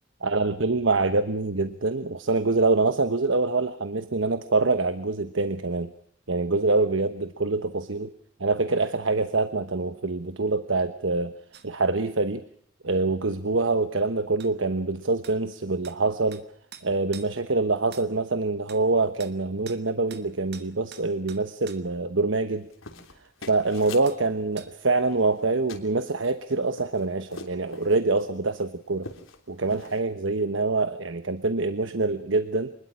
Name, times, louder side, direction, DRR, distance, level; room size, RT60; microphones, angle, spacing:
voice 1, 0.2-5.9 6.3-8.1 8.4-11.3 11.6-12.4 12.8-16.4 16.8-22.7 23.5-29.1 29.5-32.7, right 3 dB, 70° right, 11 dB, 1.2 m, -25 dB
sound 1, 11.5-11.7 14.4-14.5 15.2-15.4 15.8-16.0 16.3-16.5 16.7-17.3 17.9-18.1 18.7-18.8 19.2-19.4 19.7-19.8 20.1-20.3 20.5-21.8 24.1-24.2 24.6-24.7, right 8 dB, 55° right, 1.9 m, -46 dB
sound 2, 22.5-24.1 25.0-25.4 25.7-25.9 26.4-28.0 28.5-28.6 28.9-29.4 29.7-30.0, left 3 dB, 85° left, 3.4 m, -43 dB
25.5 x 21.0 x 6.2 m, 0.62 s
head